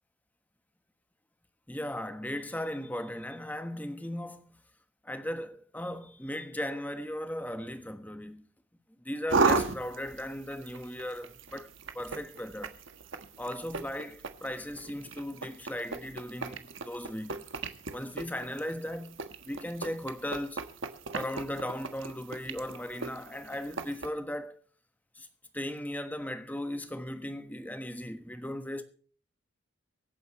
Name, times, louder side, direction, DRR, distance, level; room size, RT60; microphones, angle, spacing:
voice 1, 1.7-4.6 5.0-8.5 9.0-11.7 11.9-12.8 13.4-17.4 17.9-20.6 21.1-24.6 25.2-25.3 25.5-28.8, left 1 dB, 10° left, 1.2 m, -37 dB
sound 1, 9.3-24.1, right 4 dB, 70° right, 1.5 m, -36 dB
24.5 x 9.5 x 3.1 m
head